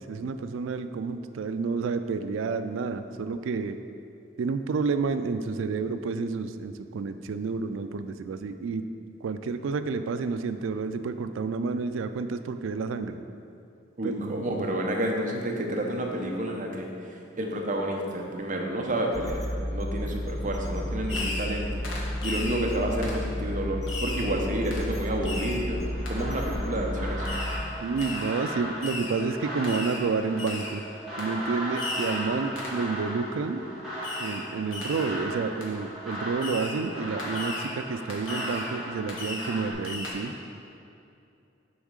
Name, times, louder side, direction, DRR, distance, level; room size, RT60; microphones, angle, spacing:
voice 1, 0.0-3.8 4.4-8.8 9.2-13.2 14.0-14.8 27.8-30.8 31.2-33.6 34.2-40.3, right 4 dB, 80° right, 9 dB, 0.4 m, -30 dB
voice 2, 14.0-21.8 22.2-27.3, right 1 dB, 40° right, 1 dB, 0.7 m, -30 dB
sound 1, 19.1-27.6, left 1 dB, 20° left, 0.3 m, -32 dB
Fireworks, 21.1-21.6 21.8-22.6 23.0-23.2 23.9-24.3 24.7-24.9 25.2-25.6 26.1-26.2 27.3-27.6 28.0-28.3 28.8-29.2 29.6-30.0 30.4-30.8 31.2-31.3 31.8-32.2 32.6-32.8 34.0-34.4 34.7-35.1 35.6-35.7 36.4-36.8 37.2-37.7 38.1-38.7 39.1-39.5 39.8-40.1, left 2 dB, 85° left, 1.3 m, -36 dB
sound 2, 25.9-39.7, equal, ahead, 1.6 m, -37 dB
7.1 x 3.6 x 6.4 m, 2.6 s
head